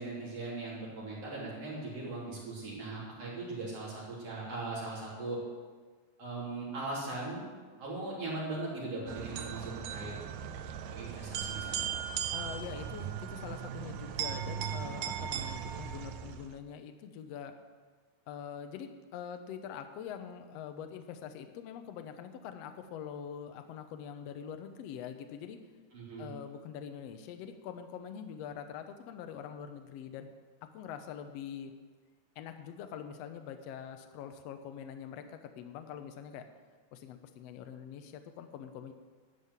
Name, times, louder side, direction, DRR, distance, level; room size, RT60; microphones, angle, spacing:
voice 1, 0.0-5.4 6.2-7.5 7.8-10.1 10.9-11.9 25.9-26.3, right 2 dB, 50° right, -6 dB, 4.4 m, -39 dB
sound 1, 9.1-16.6, right 9 dB, 75° right, 1.7 m, -38 dB
voice 2, 12.3-17.6 18.3-25.6 26.2-30.3 30.7-31.7 32.4-36.5 36.9-38.9, left 8 dB, 70° left, 7 dB, 1.6 m, -44 dB
12.0 x 5.6 x 8.1 m, 1.4 s
omnidirectional pair, 3.6 m